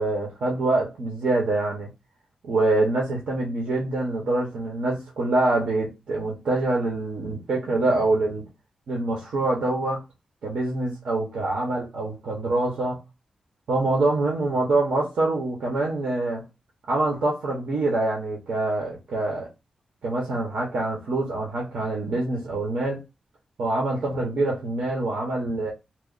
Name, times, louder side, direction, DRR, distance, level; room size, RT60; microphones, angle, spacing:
voice 1, 0.0-1.9 2.4-8.4 8.9-10.0 10.4-13.0 13.7-16.4 16.9-19.5 20.0-23.0 23.6-25.7, right 2 dB, 75° right, 0.9 m, -25 dB
3.1 x 2.0 x 3.8 m
wide cardioid pair, 170°, 2 cm